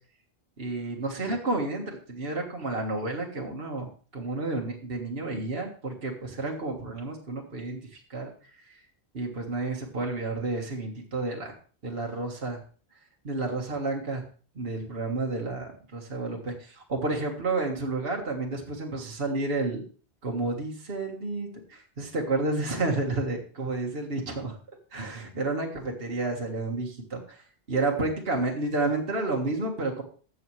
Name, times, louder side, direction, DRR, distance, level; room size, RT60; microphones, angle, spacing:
voice 1, 0.6-8.3 8.7-8.8 9.1-11.6 11.8-12.6 13.2-14.2 14.6-19.8 20.2-24.6 24.9-27.4 27.7-30.0, right 2 dB, 60° right, 0 dB, 1.8 m, -31 dB
13.0 x 7.2 x 3.2 m, 0.40 s
omnidirectional pair, 1.1 m